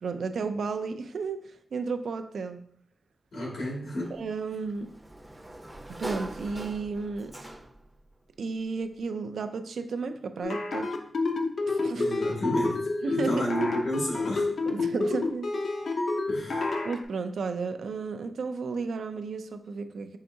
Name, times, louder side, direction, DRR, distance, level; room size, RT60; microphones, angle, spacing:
voice 1, 0.0-2.6 4.1-4.9 5.9-7.4 8.4-10.9 11.7-12.1 13.0-13.5 14.7-15.5 16.8-20.2, right 4 dB, 85° right, 8 dB, 0.4 m, -33 dB
voice 2, 3.3-4.2 11.9-12.8 13.1-14.5 16.3-16.7, equal, 85° left, -3 dB, 1.9 m, -31 dB
Sliding door, 4.0-8.0, right 1 dB, 15° right, 0.5 m, -41 dB
sound 1, 10.4-17.0, left 3 dB, 65° left, 0.6 m, -29 dB
5.6 x 3.5 x 2.7 m, 0.63 s
wide cardioid pair, 135°, 0 cm